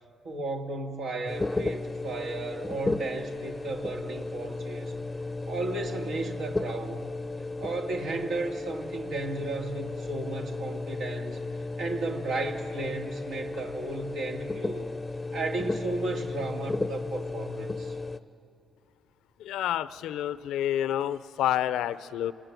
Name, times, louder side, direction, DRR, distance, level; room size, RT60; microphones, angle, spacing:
voice 1, 0.2-4.9 5.5-7.1 7.6-11.4 11.8-14.9 15.3-18.0, right 2 dB, 80° right, 1 dB, 2.1 m, -34 dB
sound 1, 1.3-18.2, left 2 dB, 15° left, 0.6 m, -34 dB
voice 2, 19.4-22.3, left 11 dB, 85° left, 15 dB, 0.6 m, -29 dB
27.5 x 21.5 x 9.2 m, 2.7 s
cardioid pair, 90°, 0 cm